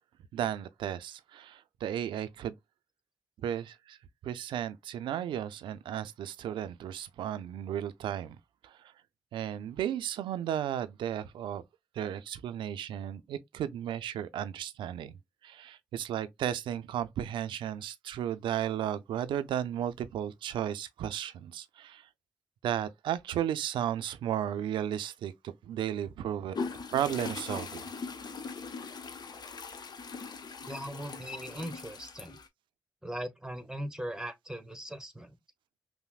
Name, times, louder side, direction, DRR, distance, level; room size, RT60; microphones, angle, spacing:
voice 1, 0.3-2.6 3.4-4.0 4.2-8.4 8.6-8.9 9.3-11.6 11.9-15.1 15.4-22.1 22.6-26.6 26.9-27.8, right 10 dB, 85° right, 0.4 m, -34 dB
sound 1, 26.5-32.5, left 4 dB, 60° left, 0.7 m, -40 dB
voice 2, 30.6-32.4 33.0-35.4, right 1 dB, 10° right, 1.1 m, -39 dB
5.7 x 2.1 x 2.3 m
supercardioid pair, 40°, 8 cm